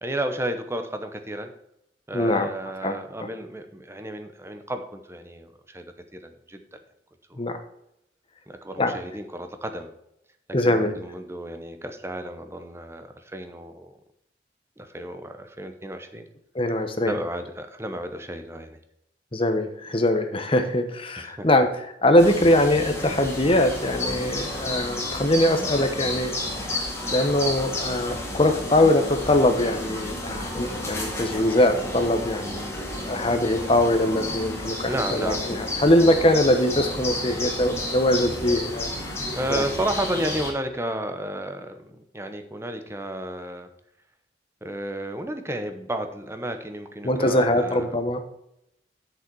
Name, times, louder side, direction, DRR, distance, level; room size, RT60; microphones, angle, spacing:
voice 1, 0.0-1.5 2.1-6.8 7.3-7.5 8.5-9.9 10.5-14.0 14.8-16.3 17.1-18.8 21.2-21.5 34.8-35.4 39.3-43.7 44.6-47.9, right 1 dB, 15° right, 7 dB, 0.9 m, -32 dB
voice 2, 2.1-2.5 2.8-3.3 7.4-7.6 8.8-8.9 10.5-11.0 16.5-17.1 19.3-21.7 22.0-26.3 27.1-32.7 33.1-38.9 39.5-39.6 47.0-48.2, left 1 dB, 30° left, 7 dB, 1.0 m, -22 dB
sound 1, 22.2-40.5, left 1 dB, 15° left, 2.2 m, -31 dB
8.0 x 6.5 x 4.7 m, 0.78 s
head